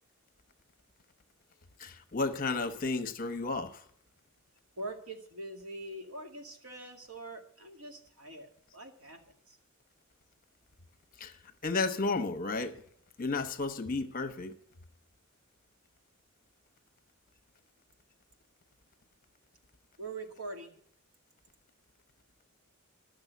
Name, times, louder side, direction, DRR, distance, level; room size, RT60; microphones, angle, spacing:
voice 1, 1.8-3.8 11.2-11.4 11.6-12.8 13.2-14.5, left 3 dB, 40° left, 1.0 m, -32 dB
voice 2, 4.8-9.6 20.0-20.8, right 2 dB, 80° right, 2.2 m, -44 dB
12.5 x 6.6 x 9.3 m
head